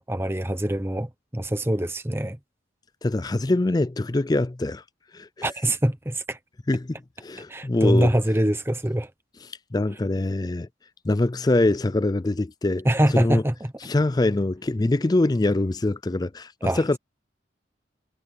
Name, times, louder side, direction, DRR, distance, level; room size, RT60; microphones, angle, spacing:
voice 1, 0.0-2.4 5.4-6.4 7.5-9.1 12.8-13.7 16.6-16.8, right 1 dB, 10° right, 1.0 m, -24 dB
voice 2, 3.0-4.8 5.1-5.5 6.7-8.1 9.7-10.7 11.0-12.9 13.1-13.4 13.8-17.0, left 2 dB, 20° left, 0.4 m, -24 dB
head